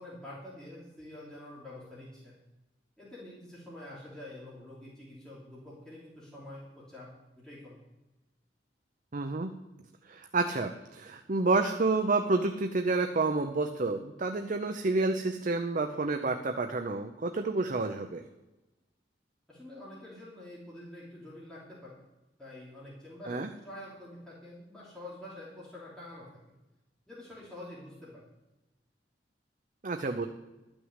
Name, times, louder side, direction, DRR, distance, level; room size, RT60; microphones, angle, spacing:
voice 1, 0.0-2.3 3.0-7.1 7.4-7.8 19.5-22.0 22.4-26.4 27.1-28.2, left 1 dB, 5° left, -9 dB, 3.1 m, -47 dB
voice 2, 9.1-9.5 10.1-18.2 23.3-23.5 29.8-30.3, right 3 dB, 45° right, 6 dB, 0.6 m, -29 dB
12.5 x 6.2 x 8.1 m, 1.0 s
head